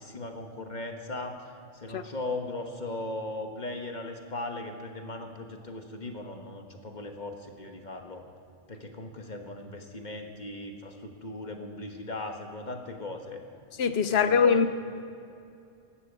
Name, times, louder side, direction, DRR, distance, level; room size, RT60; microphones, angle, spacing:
voice 1, 0.0-1.4 1.7-8.2 8.7-13.4 14.1-14.6, left 2 dB, 40° left, 4 dB, 1.4 m, -38 dB
voice 2, 13.8-14.7, left 6 dB, 60° left, 11 dB, 0.9 m, -22 dB
12.5 x 10.5 x 8.2 m, 2.5 s
omnidirectional pair, 1.3 m